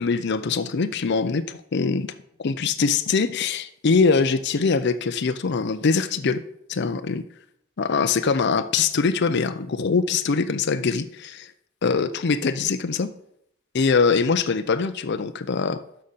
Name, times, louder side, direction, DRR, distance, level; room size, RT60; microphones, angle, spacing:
voice 1, 0.0-2.1 2.4-6.4 6.7-7.2 7.8-11.5 11.8-13.1 13.7-15.8, left 5 dB, 55° left, 12 dB, 0.5 m, -23 dB
6.5 x 6.4 x 5.5 m, 0.72 s
head